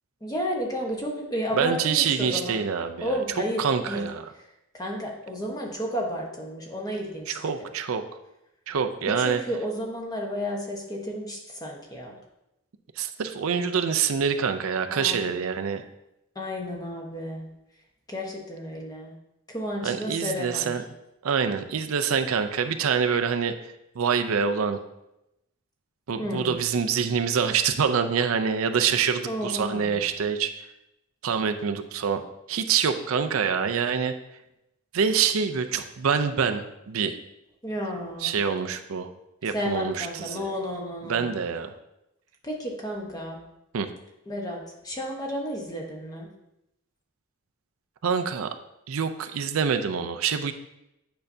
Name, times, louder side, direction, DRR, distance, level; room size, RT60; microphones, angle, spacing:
voice 1, 0.2-2.6 3.0-4.1 4.4-4.5 4.7-7.5 9.1-12.2 14.9-15.4 16.3-17.5 18.1-19.1 19.5-20.7 26.2-26.5 29.2-30.0 37.6-38.3 39.5-41.2 42.4-43.4 44.3-46.3, equal, 20° left, 0 dB, 1.1 m, -32 dB
voice 2, 1.5-3.2 3.6-4.2 7.3-8.0 8.7-9.4 13.0-15.8 19.8-20.8 21.2-24.8 26.1-30.7 31.2-32.2 32.5-34.1 34.9-37.2 38.2-39.1 39.4-40.5 41.0-41.8 43.7-43.9 48.0-48.5 48.9-50.5, right 6 dB, 75° right, 7 dB, 0.5 m, -26 dB
8.8 x 5.6 x 2.7 m, 0.87 s
head